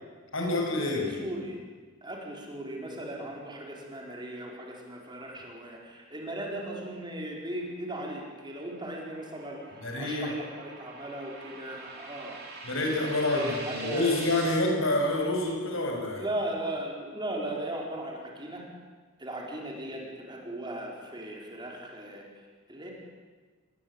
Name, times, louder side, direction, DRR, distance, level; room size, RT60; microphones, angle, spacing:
voice 1, 0.3-1.1 9.8-10.3 12.6-16.2, left 2 dB, 65° left, 1 dB, 6.9 m, -27 dB
voice 2, 0.9-1.6 2.0-12.4 13.3-14.1 16.1-18.7 19.2-22.9, right 1 dB, 20° right, 0 dB, 4.8 m, -37 dB
sound 1, 7.7-14.6, right 3 dB, 50° right, 6.6 m, -44 dB
28.5 x 20.5 x 9.0 m, 1.4 s
head